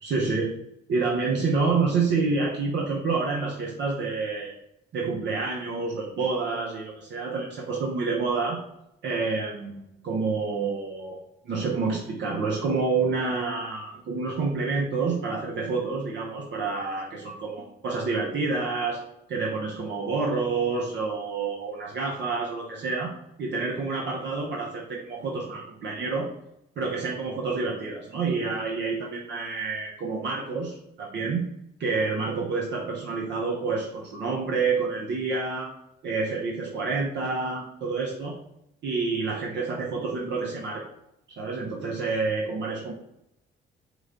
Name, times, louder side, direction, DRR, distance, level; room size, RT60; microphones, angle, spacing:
voice 1, 0.0-0.5 0.9-4.5 4.9-8.6 9.0-11.2 11.4-19.0 19.3-23.1 23.4-26.3 26.8-31.5 31.8-35.7 36.0-38.4 38.8-40.8 41.4-43.0, right 4 dB, 65° right, -2 dB, 0.8 m, -28 dB
4.8 x 2.2 x 3.7 m, 0.81 s
cardioid pair, 90°, 20 cm